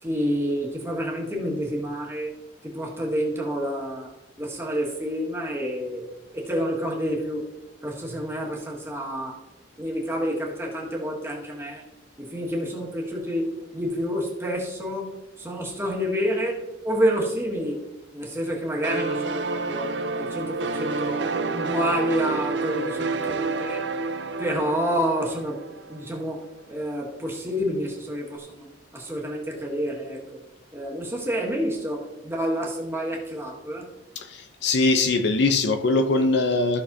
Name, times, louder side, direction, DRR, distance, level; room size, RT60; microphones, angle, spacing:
voice 1, 0.0-2.3 2.6-4.1 4.4-6.1 6.3-7.5 7.8-9.4 9.8-11.8 12.2-17.8 18.1-23.9 24.4-25.6 25.9-30.4 30.7-33.9, equal, 15° right, 1.7 m, -28 dB
sound 1, 18.8-26.3, right 3 dB, 65° right, 0.6 m, -29 dB
voice 2, 34.2-36.8, left 3 dB, 60° left, 0.6 m, -22 dB
14.5 x 6.3 x 2.7 m
head